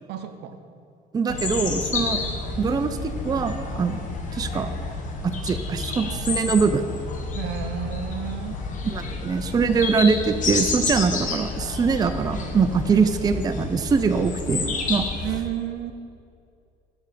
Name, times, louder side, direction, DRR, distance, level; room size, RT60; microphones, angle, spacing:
voice 1, 0.1-0.6 1.3-1.5 7.3-8.6 15.2-15.9, right 10 dB, 80° right, 8 dB, 0.6 m, -31 dB
voice 2, 1.1-2.2 2.6-4.0 4.3-4.7 5.4-6.9 8.8-15.1, right 5 dB, 25° right, 8 dB, 0.4 m, -23 dB
sound 1, 1.3-15.4, left 4 dB, 50° left, 1.0 m, -30 dB
7.3 x 6.2 x 4.9 m, 2.5 s
cardioid pair, 110°, 17 cm